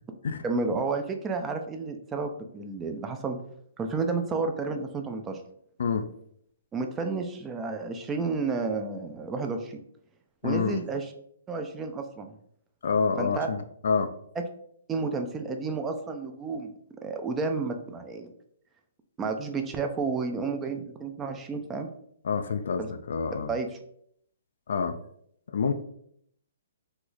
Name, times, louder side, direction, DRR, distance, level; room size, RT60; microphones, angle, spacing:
voice 1, 0.4-3.4 3.8-5.4 6.7-9.8 10.4-11.1 11.5-12.3 13.2-13.5 14.4-14.5 14.9-16.7 17.0-18.3 19.2-21.9 22.8-22.9 23.5-23.7, right 4 dB, 15° right, 5 dB, 0.4 m, -31 dB
voice 2, 5.8-6.1 10.4-10.8 12.8-14.1 22.2-23.5 24.7-25.0 25.5-25.7, left 5 dB, 70° left, 8 dB, 0.3 m, -27 dB
3.1 x 2.0 x 3.7 m, 0.69 s
hypercardioid pair, 140°, 0 cm